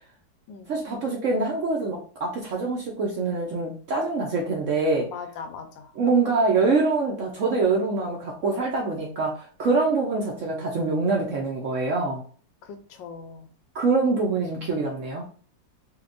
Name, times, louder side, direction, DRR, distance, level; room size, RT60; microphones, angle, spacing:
voice 1, 0.7-5.1 6.0-12.2 13.7-15.2, right 3 dB, 65° right, -1 dB, 0.8 m, -25 dB
voice 2, 5.0-5.9 12.6-13.5, left 5 dB, 90° left, 7 dB, 1.4 m, -40 dB
4.2 x 2.3 x 2.5 m, 0.41 s
omnidirectional pair, 2.0 m